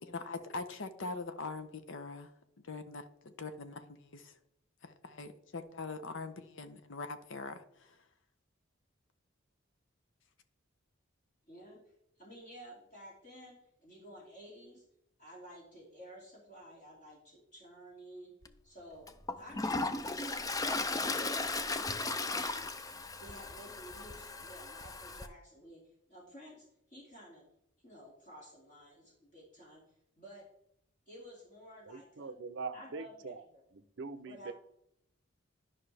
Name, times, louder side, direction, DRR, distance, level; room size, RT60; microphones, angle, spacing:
voice 1, 0.0-2.3 2.6-4.3 4.8-8.0, left 3 dB, 65° left, 0.8 m, -43 dB
voice 2, 11.5-11.8 12.2-14.8 15.2-18.3 18.6-19.1 19.4-19.8 20.0-22.2 23.2-25.8 26.1-27.4 27.8-29.8 30.2-30.4 31.1-32.3 32.7-33.6 34.2-34.5, equal, 40° left, 2.6 m, -53 dB
Toilet flush, 18.4-18.5 19.1-25.3, left 3 dB, 15° left, 0.4 m, -36 dB
voice 3, 31.9-33.4 33.7-34.5, right 4 dB, 60° right, 0.6 m, -43 dB
11.0 x 5.7 x 3.4 m
head